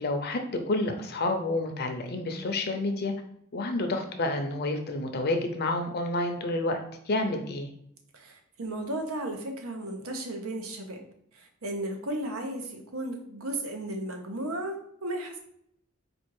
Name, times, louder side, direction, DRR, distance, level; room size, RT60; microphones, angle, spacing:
voice 1, 0.0-3.1 3.5-7.7, left 2 dB, 50° left, 6 dB, 0.6 m, -29 dB
voice 2, 8.1-11.0 11.3-15.4, right 1 dB, 85° right, 4 dB, 0.9 m, -35 dB
4.3 x 2.4 x 4.7 m, 0.70 s
head